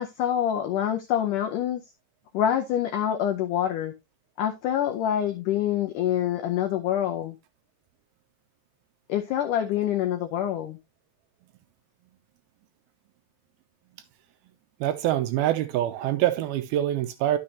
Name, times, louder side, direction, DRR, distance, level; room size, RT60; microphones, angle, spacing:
voice 1, 0.0-1.8 2.3-3.9 4.4-7.4 9.1-10.8, left 10 dB, 85° left, 1.8 m, -26 dB
voice 2, 14.8-17.4, right 13 dB, 80° right, 2.4 m, -25 dB
11.5 x 6.5 x 2.7 m
omnidirectional pair, 4.7 m